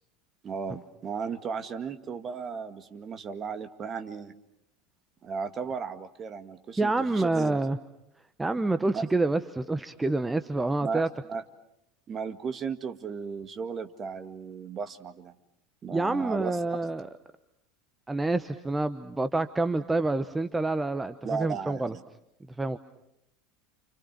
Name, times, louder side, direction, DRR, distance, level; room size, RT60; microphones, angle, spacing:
voice 1, 0.4-4.3 5.2-7.6 8.9-9.0 10.8-11.0 11.3-11.4 12.1-15.4 15.8-16.6 21.2-22.0, right 6 dB, 30° right, 8 dB, 2.0 m, -35 dB
voice 2, 6.8-7.8 8.4-11.1 15.9-17.1 18.1-21.9 22.6-22.8, right 2 dB, 10° right, 11 dB, 1.0 m, -27 dB
29.5 x 28.0 x 6.1 m, 0.82 s
figure-of-eight pair, 75°, 0 cm